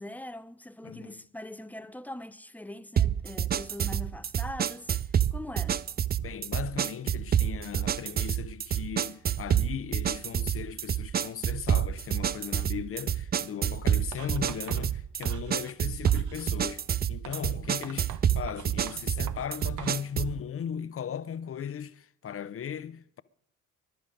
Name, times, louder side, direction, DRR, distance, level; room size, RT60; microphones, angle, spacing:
voice 1, 0.0-5.8, left 1 dB, 5° left, 0.8 m, -42 dB
voice 2, 0.8-1.2 6.2-23.2, left 8 dB, 35° left, 0.9 m, -37 dB
sound 1, 3.0-20.4, right 9 dB, 25° right, 0.5 m, -28 dB
Writing, 14.1-15.8 16.1-16.6 17.2-20.0, right 10 dB, 50° right, 1.1 m, -45 dB
21.5 x 11.5 x 5.2 m
hypercardioid pair, 55°, 38 cm